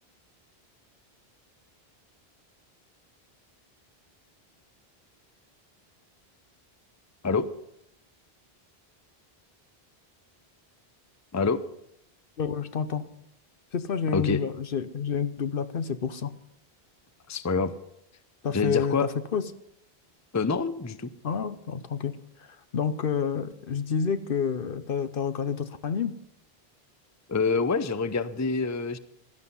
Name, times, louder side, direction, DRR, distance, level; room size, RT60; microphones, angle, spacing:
voice 1, 12.4-13.0 13.7-16.3 18.4-19.4 21.2-22.2 22.7-26.1, left 7 dB, 65° left, 12 dB, 1.0 m, -29 dB
voice 2, 17.3-17.7 18.5-19.1 20.3-21.1 27.3-29.0, left 4 dB, 20° left, 13 dB, 0.6 m, -26 dB
17.0 x 12.0 x 5.5 m, 0.74 s
omnidirectional pair, 1.0 m